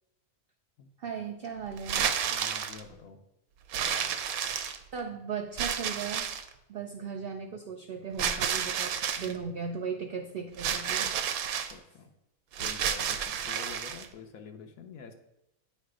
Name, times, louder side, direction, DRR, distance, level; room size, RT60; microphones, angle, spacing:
voice 1, 1.0-2.1 4.9-6.3 6.7-11.1, right 6 dB, 65° right, 4 dB, 0.5 m, -37 dB
sound 1, 1.8-2.8 3.7-5.0 5.6-6.5 8.2-9.3 10.6-11.7 12.5-14.1, right 8 dB, 85° right, 1.0 m, -31 dB
voice 2, 2.3-3.2 3.8-4.2 11.6-12.1 12.6-15.1, left 6 dB, 80° left, 5 dB, 1.1 m, -47 dB
8.4 x 3.2 x 4.8 m, 0.87 s
omnidirectional pair, 1.5 m